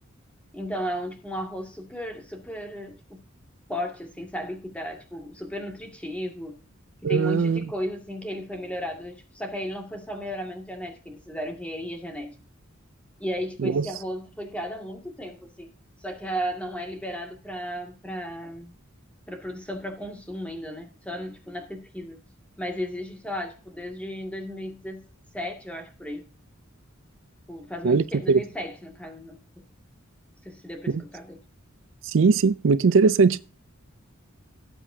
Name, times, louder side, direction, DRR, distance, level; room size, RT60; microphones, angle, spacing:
voice 1, 0.5-3.2 3.7-6.6 7.0-12.4 13.2-15.7 16.0-18.7 19.3-22.2 22.6-25.0 25.3-26.2 27.5-29.4 30.4-31.4, equal, 5° left, 2.1 m, -34 dB
voice 2, 7.0-7.6 13.6-13.8 27.8-28.4 32.0-33.4, right 4 dB, 60° right, 0.4 m, -20 dB
18.5 x 7.7 x 2.7 m
head